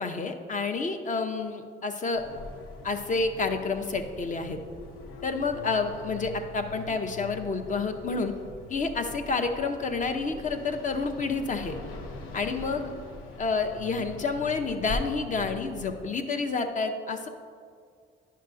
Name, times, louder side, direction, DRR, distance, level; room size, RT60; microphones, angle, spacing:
voice 1, 0.0-2.2 2.8-4.6 5.2-8.3 8.7-11.8 12.3-12.9 13.4-17.3, left 4 dB, 40° left, 6 dB, 0.6 m, -29 dB
sound 1, 2.1-16.1, left 3 dB, 85° left, 0.8 m, -42 dB
10.0 x 5.5 x 2.6 m, 2.1 s
cardioid pair, 90°, 20 cm